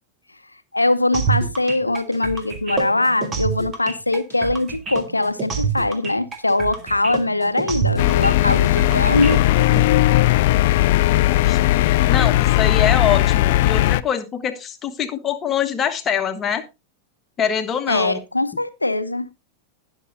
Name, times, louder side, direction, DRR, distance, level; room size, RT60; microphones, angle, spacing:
voice 1, 0.7-9.4 17.9-19.3, left 2 dB, 85° left, 0.8 m, -21 dB
sound 1, 1.1-9.8, right 6 dB, 25° right, 2.0 m, -27 dB
sound 2, 8.0-14.0, left 15 dB, 50° left, 0.4 m, -17 dB
voice 2, 11.3-16.6 17.4-18.2, left 8 dB, 25° left, 1.4 m, -24 dB
19.0 x 6.4 x 2.6 m
figure-of-eight pair, 90°, 0 cm